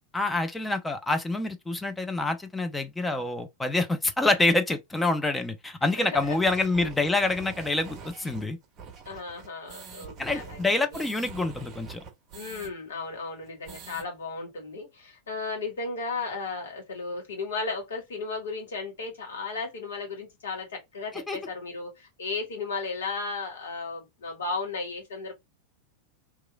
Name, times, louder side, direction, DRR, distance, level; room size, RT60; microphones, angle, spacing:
voice 1, 0.1-8.6 10.2-12.0 21.1-21.4, left 2 dB, 10° left, 0.5 m, -27 dB
voice 2, 5.8-6.4 9.0-11.0 12.3-25.3, left 3 dB, 65° left, 1.3 m, -35 dB
sound 1, 6.1-12.7 13.0-13.1 13.4-14.1, right 5 dB, 35° right, 0.7 m, -45 dB
3.0 x 2.2 x 2.3 m
figure-of-eight pair, 90°, 0 cm